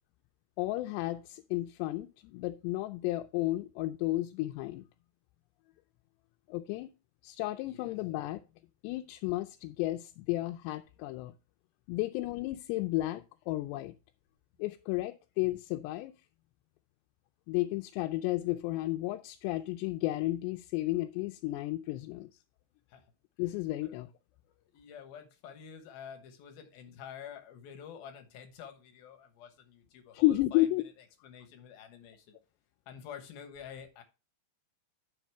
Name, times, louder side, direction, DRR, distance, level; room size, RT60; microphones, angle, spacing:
voice 1, 0.6-4.8 6.5-6.9 7.2-8.4 8.8-11.3 11.9-13.9 14.6-16.1 17.5-22.3 23.4-24.1 30.1-30.8, left 17 dB, 90° left, 2.7 m, -32 dB
voice 2, 7.6-8.0 22.9-23.0 23.4-24.0 24.5-32.3 32.9-34.0, left 8 dB, 70° left, 2.8 m, -49 dB
10.0 x 6.1 x 3.4 m
omnidirectional pair, 4.8 m